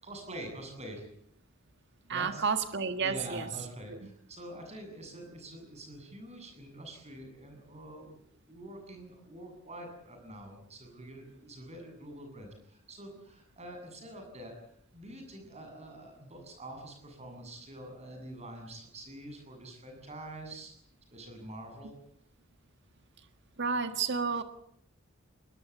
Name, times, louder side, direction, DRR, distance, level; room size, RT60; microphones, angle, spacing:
voice 1, 0.0-1.1 2.1-2.4 3.0-20.7 21.1-21.9, right 1 dB, 30° right, 5 dB, 7.7 m, -46 dB
voice 2, 2.1-3.5 3.9-4.0 23.6-24.4, right 5 dB, 55° right, 8 dB, 1.7 m, -31 dB
21.0 x 21.0 x 8.6 m, 0.69 s
head